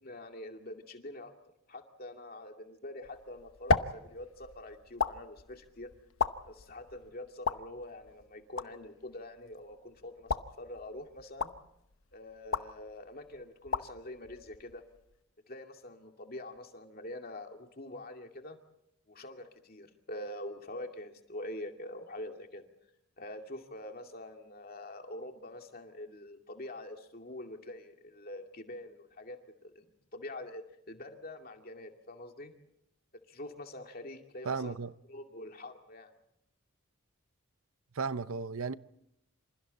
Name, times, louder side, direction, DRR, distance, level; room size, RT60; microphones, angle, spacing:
voice 1, 0.0-1.3 1.7-5.9 6.5-11.5 12.1-14.8 15.5-18.6 19.1-22.7 23.2-29.8 30.1-32.5 33.1-34.8 35.1-36.1, left 1 dB, 45° left, 2.4 m, -45 dB
sound 1, 3.0-15.2, left 4 dB, 70° left, 0.9 m, -37 dB
voice 2, 34.5-34.9 37.9-38.8, right 4 dB, 75° right, 0.7 m, -34 dB
27.0 x 27.0 x 4.2 m
head